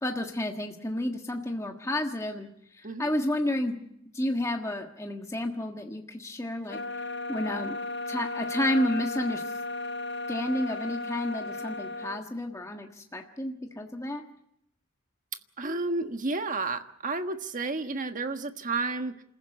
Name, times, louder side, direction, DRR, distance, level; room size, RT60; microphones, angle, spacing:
voice 1, 0.0-2.5 2.8-3.8 4.1-6.8 7.3-7.7 8.1-9.4 10.3-14.2, left 1 dB, 15° left, 3 dB, 1.5 m, -31 dB
sound 1, 6.7-12.2, left 2 dB, 55° left, 0.9 m, -35 dB
voice 2, 15.6-19.2, right 3 dB, 35° right, 7 dB, 1.5 m, -31 dB
28.0 x 15.0 x 8.5 m, 0.77 s
head